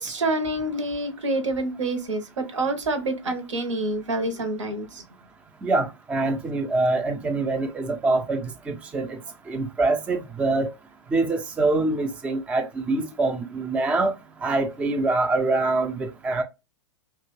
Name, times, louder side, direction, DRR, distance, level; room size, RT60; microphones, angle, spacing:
voice 1, 0.0-5.0, right 2 dB, 80° right, 0.8 m, -27 dB
voice 2, 5.6-9.2 9.5-10.7 11.1-14.1 14.4-16.4, right 2 dB, 10° right, 0.3 m, -24 dB
2.4 x 2.2 x 3.0 m
hypercardioid pair, 110°, 15 cm